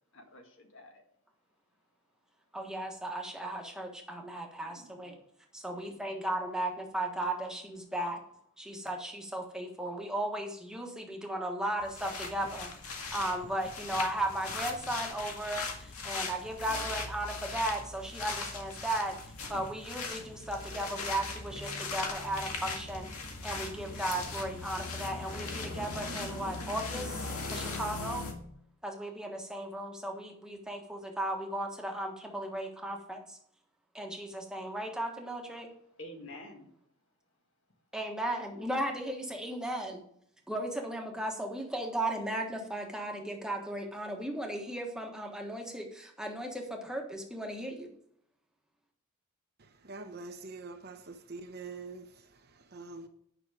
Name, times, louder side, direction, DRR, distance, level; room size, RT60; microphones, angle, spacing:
voice 1, 0.1-1.0 4.6-5.2 5.7-6.2 36.0-36.7, left 1 dB, 60° left, 1.8 m, -50 dB
voice 2, 2.5-5.2 5.5-8.2 8.6-19.2 19.5-28.3 28.8-33.4 33.9-35.7 37.9-40.0 40.5-47.9, right 1 dB, 5° right, 1.4 m, -36 dB
sound 1, 11.8-28.3, left 3 dB, 85° left, 1.9 m, -39 dB
voice 3, 49.6-53.1, right 3 dB, 45° right, 1.0 m, -45 dB
10.0 x 6.0 x 5.0 m
head